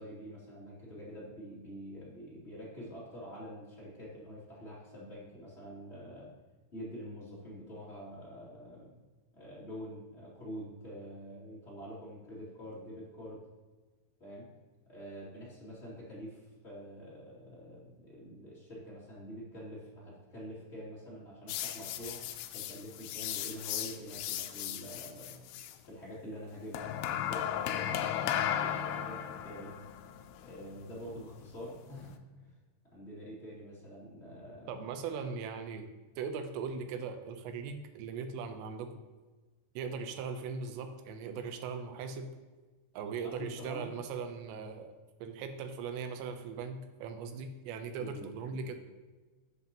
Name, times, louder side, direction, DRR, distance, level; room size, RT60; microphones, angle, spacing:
voice 1, 0.0-6.3 6.7-8.9 9.3-13.4 14.2-14.5 14.9-22.2 22.5-25.4 25.9-29.7 30.4-32.5 32.9-34.7 43.4-43.9 48.0-48.7, equal, 20° left, -7 dB, 1.9 m, -46 dB
sound 1, 21.5-25.8 26.7-32.1, left 10 dB, 85° left, 2.4 m, -36 dB
voice 2, 34.7-35.9 36.2-38.9 39.8-42.3 42.9-44.9 45.2-48.7, right 5 dB, 85° right, 7 dB, 2.9 m, -39 dB
11.0 x 7.7 x 2.9 m, 1.3 s
omnidirectional pair, 5.1 m